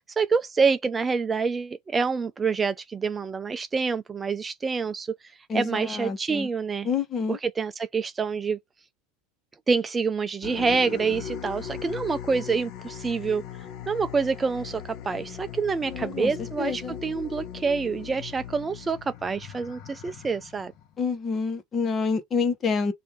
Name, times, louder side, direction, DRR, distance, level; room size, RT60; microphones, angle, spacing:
voice 1, 0.2-5.1 5.5-6.9 7.3-8.6 9.7-13.4 13.9-20.7, right 5 dB, 20° right, 0.4 m, -27 dB
voice 2, 5.5-6.5 6.8-7.4 15.9-16.3 16.6-17.0 21.0-22.9, left 5 dB, 30° left, 1.2 m, -28 dB
sound 1, 10.4-21.0, left 9 dB, 55° left, 1.0 m, -39 dB
3.3 x 2.7 x 4.4 m
hypercardioid pair, 100°, 0 cm